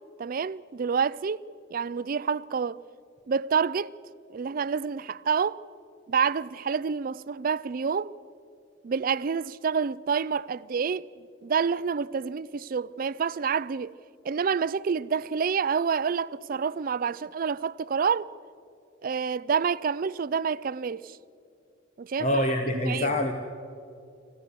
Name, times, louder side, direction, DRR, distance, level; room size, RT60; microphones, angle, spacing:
voice 1, 0.2-1.4 1.7-2.8 3.3-3.9 4.3-5.6 6.1-8.1 8.8-11.1 11.4-13.9 14.2-18.3 19.0-21.2 22.0-22.3 22.9-23.1, right 6 dB, 50° right, 0.4 m, -28 dB
voice 2, 22.2-23.3, left 1 dB, 40° left, 1.1 m, -25 dB
26.0 x 15.5 x 6.8 m
head